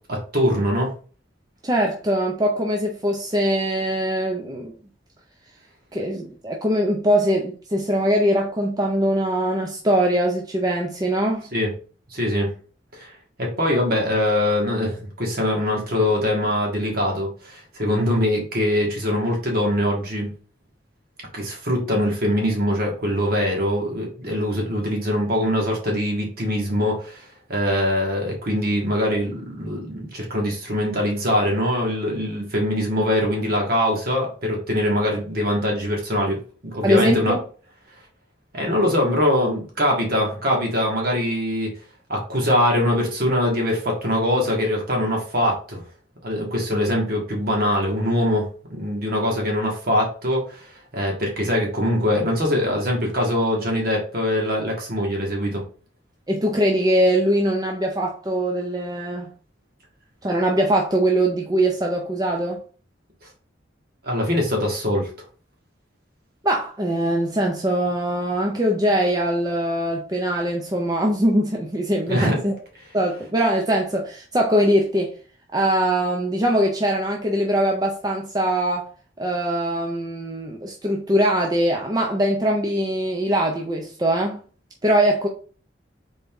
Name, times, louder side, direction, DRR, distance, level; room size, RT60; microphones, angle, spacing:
voice 1, 0.1-0.9 11.5-11.7 12.1-12.5 13.0-13.1 13.4-20.3 21.3-37.4 38.5-41.7 42.1-45.8 46.2-55.6 64.0-65.1 72.1-72.4, left 1 dB, 55° right, 1.6 m, -23 dB
voice 2, 1.6-4.8 5.9-11.5 36.8-37.4 56.3-59.3 60.2-62.6 66.4-72.5 72.9-75.1 75.5-78.9 79.2-84.4 84.8-85.3, right 1 dB, 20° right, 0.5 m, -22 dB
3.9 x 3.4 x 3.6 m
head